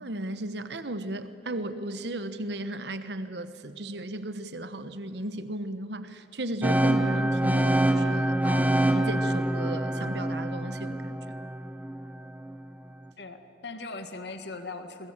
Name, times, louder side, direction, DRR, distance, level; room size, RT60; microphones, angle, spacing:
voice 1, 0.0-11.2, right 1 dB, 75° right, 11 dB, 1.2 m, -35 dB
sound 1, 6.6-12.6, right 1 dB, 10° right, 0.9 m, -26 dB
voice 2, 13.2-15.1, left 3 dB, 75° left, 8 dB, 2.0 m, -39 dB
30.0 x 23.0 x 7.3 m, 2.6 s
head